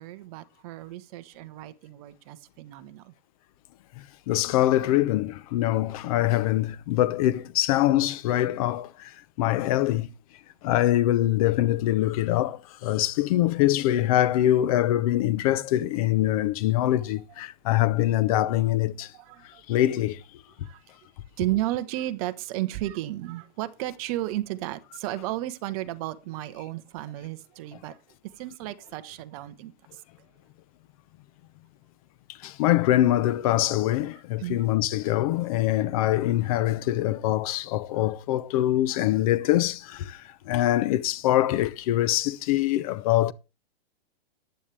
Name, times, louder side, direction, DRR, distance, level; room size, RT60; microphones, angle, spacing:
voice 1, 0.0-3.1 16.2-16.4 19.0-19.6 20.6-20.8 21.4-28.0 28.4-29.7 34.4-34.6, right 15 dB, 35° right, 1.2 m, -33 dB
voice 2, 4.3-9.1 9.4-10.1 10.6-19.1 19.7-20.2 32.4-43.3, left 14 dB, 35° left, 0.8 m, -24 dB
15.0 x 10.5 x 3.4 m
hypercardioid pair, 150°, 31 cm